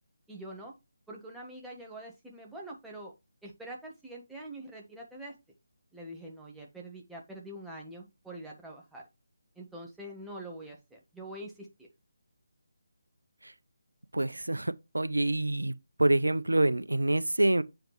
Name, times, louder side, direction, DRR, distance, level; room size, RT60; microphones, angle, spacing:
voice 1, 0.3-0.7 1.1-3.1 3.4-5.3 5.9-9.0 9.5-11.9, right 1 dB, 5° right, 1.3 m, -45 dB
voice 2, 14.1-15.7 16.0-17.6, right 1 dB, 85° right, 0.5 m, -26 dB
8.0 x 5.1 x 3.0 m
figure-of-eight pair, 155°, 0 cm